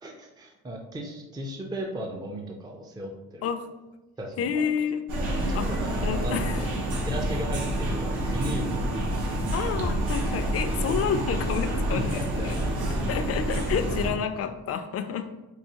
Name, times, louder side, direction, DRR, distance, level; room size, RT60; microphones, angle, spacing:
voice 1, 0.0-3.5 4.2-4.7 5.4-6.4 7.0-8.9 11.9-12.5, equal, 15° right, 1 dB, 0.4 m, -36 dB
voice 2, 4.4-5.0 5.5-5.7 6.0-6.7 9.5-12.6 13.1-15.3, left 7 dB, 55° left, 9 dB, 0.4 m, -29 dB
sound 1, 5.1-14.1, right 1 dB, 75° right, 0.9 m, -28 dB
4.7 x 2.4 x 2.8 m, 1.0 s
cardioid pair, 90°, 30 cm